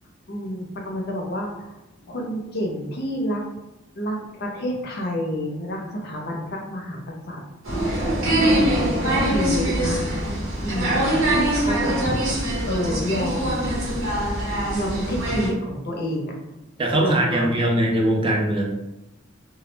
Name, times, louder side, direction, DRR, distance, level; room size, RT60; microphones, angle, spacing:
voice 1, 0.3-1.7 2.1-3.4 4.0-7.4 8.3-8.6 9.0-10.1 10.6-13.7 14.7-16.4 17.0-17.6, equal, 55° left, 0 dB, 0.5 m, -29 dB
sound 1, 7.6-15.5, right 1 dB, 80° right, 0.9 m, -23 dB
voice 2, 16.8-18.6, right 1 dB, 25° right, -1 dB, 0.4 m, -21 dB
2.2 x 2.0 x 3.1 m, 0.94 s
head